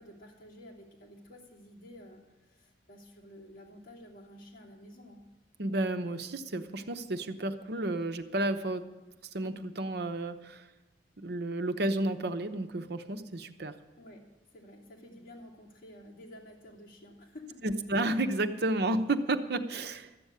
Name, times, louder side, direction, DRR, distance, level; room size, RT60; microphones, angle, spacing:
voice 1, 0.0-5.2 14.0-17.7, left 1 dB, 50° left, -3 dB, 3.0 m, -51 dB
voice 2, 5.6-8.9 9.3-10.6 11.2-13.7 17.6-20.1, right 2 dB, 65° right, 9 dB, 0.9 m, -31 dB
13.0 x 7.0 x 9.6 m, 1.1 s
head